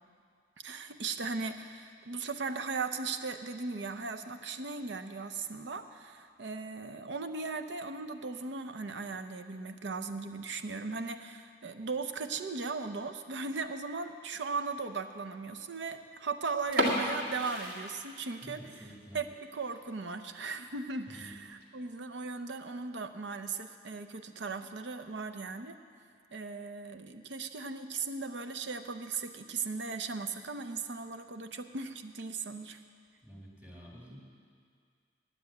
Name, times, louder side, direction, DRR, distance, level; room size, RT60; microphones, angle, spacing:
voice 1, 0.6-25.8 26.3-32.8, right 4 dB, 70° right, 9 dB, 0.7 m, -38 dB
sound 1, 16.6-18.6 18.9-19.0 19.5-19.7 20.1-20.2 20.5-20.6 21.3-21.6, equal, 50° right, 2.0 m, -32 dB
voice 2, 18.4-19.2 21.1-21.4 33.2-34.2, equal, 10° right, -3 dB, 2.0 m, -49 dB
10.0 x 9.2 x 8.4 m, 2.2 s
head